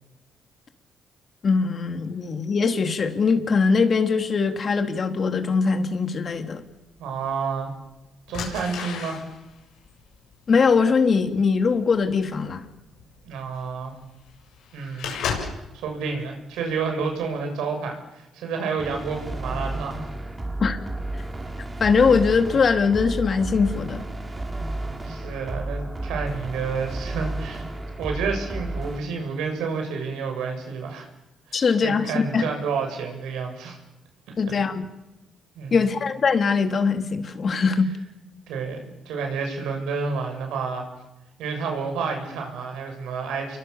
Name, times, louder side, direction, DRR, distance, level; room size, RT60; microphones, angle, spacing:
voice 1, 1.4-6.6 10.5-12.6 20.6-20.8 21.8-24.0 31.5-32.5 34.4-34.8 35.7-37.9, left 5 dB, 45° left, 6 dB, 3.1 m, -21 dB
sound 1, 6.8-6.9 7.7-7.9 8.3-15.8 16.2-16.6 17.0-17.3, left 6 dB, 85° left, 7.6 m, -34 dB
voice 2, 7.0-7.7 8.3-9.2 13.2-14.0 14.7-15.1 15.7-20.1 25.0-27.6 28.0-31.1 31.5-33.8 35.6-35.8 38.5-40.9 41.4-43.6, right 5 dB, 90° right, 4 dB, 7.6 m, -30 dB
sound 2, 18.8-29.0, right 2 dB, 20° right, 4.8 m, -32 dB
29.5 x 23.0 x 7.3 m, 0.98 s
cardioid pair, 90°, 0 cm